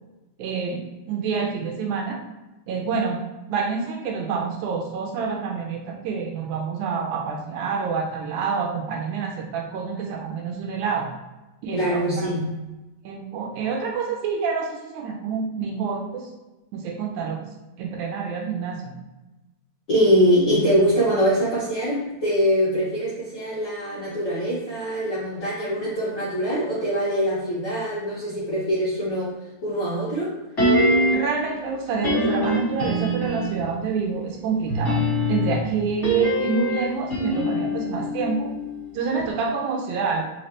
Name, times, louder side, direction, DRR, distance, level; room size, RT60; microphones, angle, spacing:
voice 1, 0.4-2.2 2.7-3.2 3.5-11.1 11.6-12.3 13.0-16.3 16.7-17.5 17.8-18.9 31.1-35.0 35.3-38.5 38.9-40.2, right 5 dB, 80° right, 1 dB, 2.0 m, -27 dB
voice 2, 11.7-12.5 19.9-29.3 29.6-30.3, equal, 65° left, -9 dB, 1.1 m, -23 dB
sound 1, 30.6-31.4 32.0-33.7 34.7-38.9 39.2-39.3, equal, 35° left, 1.1 m, -23 dB
4.8 x 3.1 x 2.9 m, 1.0 s
omnidirectional pair, 3.7 m